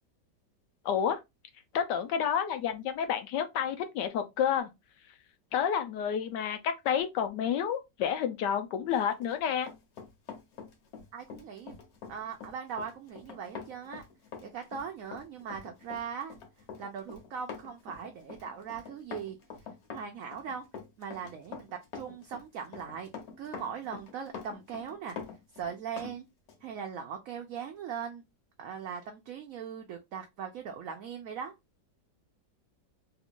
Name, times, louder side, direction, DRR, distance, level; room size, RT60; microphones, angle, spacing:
voice 1, 0.8-1.2 1.7-4.7 5.5-9.7, left 8 dB, 80° left, 1.3 m, -30 dB
Run, 9.1-26.2 26.5-26.6, left 6 dB, 60° left, 1.4 m, -45 dB
voice 2, 11.1-11.8 12.1-14.0 14.4-16.4 16.8-19.4 19.9-20.6 21.0-23.1 23.4-25.2 25.6-26.3 26.6-28.2 28.6-31.5, right 7 dB, 65° right, 0.8 m, -40 dB
3.4 x 2.4 x 3.6 m
omnidirectional pair, 1.9 m